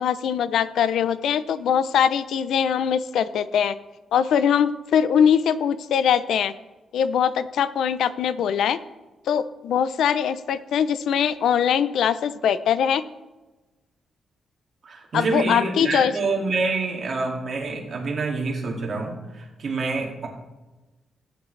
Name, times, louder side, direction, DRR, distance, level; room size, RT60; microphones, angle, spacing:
voice 1, 0.0-3.7 4.1-6.5 6.9-8.8 9.3-13.0 15.1-16.1, left 8 dB, 85° left, 14 dB, 0.5 m, -22 dB
voice 2, 14.8-20.3, right 3 dB, 45° right, 0 dB, 2.1 m, -27 dB
15.5 x 8.8 x 3.2 m, 1.1 s
wide cardioid pair, 150°, 0 cm